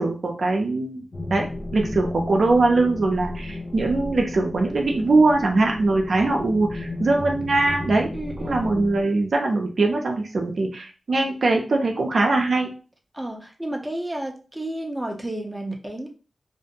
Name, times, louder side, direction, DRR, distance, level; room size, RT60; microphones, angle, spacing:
voice 1, 0.0-1.5 1.7-8.1 8.4-12.7, right 2 dB, 70° right, 2 dB, 0.5 m, -21 dB
sound 1, 1.1-9.0, left 2 dB, 50° left, 0.5 m, -34 dB
voice 2, 8.1-8.6 13.1-16.1, right 1 dB, 15° right, 1 dB, 0.6 m, -31 dB
2.5 x 2.1 x 2.8 m, 0.35 s
cardioid pair, 65°, 0 cm